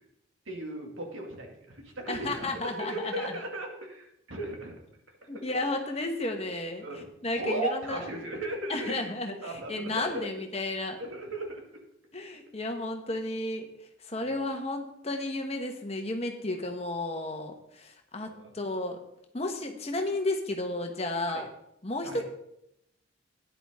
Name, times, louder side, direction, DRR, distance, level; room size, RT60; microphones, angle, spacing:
voice 1, 0.5-2.5 2.8-4.7 5.3-5.4 6.8-7.0 7.3-9.1 9.4-10.3 11.0-11.6 14.2-14.3 18.2-18.5 21.3-21.5 22.0-22.2, right 2 dB, 80° right, 1 dB, 2.4 m, -36 dB
voice 2, 2.1-3.3 5.3-6.8 7.2-8.1 8.7-11.0 12.1-13.7 14.0-19.0 19.3-21.4 21.8-22.2, left 2 dB, 30° left, 4 dB, 1.4 m, -33 dB
13.5 x 10.0 x 3.7 m, 0.79 s
head